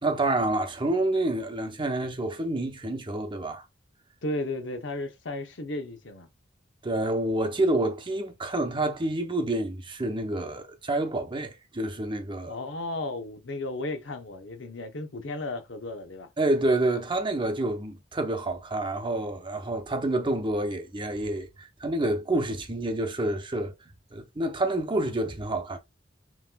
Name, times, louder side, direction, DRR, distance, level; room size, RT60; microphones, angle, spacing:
voice 1, 0.0-3.6 6.8-12.6 16.4-23.7 24.1-25.8, right 2 dB, 25° right, 0.7 m, -28 dB
voice 2, 4.2-6.3 12.4-16.3, left 2 dB, 75° left, 0.8 m, -34 dB
5.5 x 3.0 x 2.2 m
head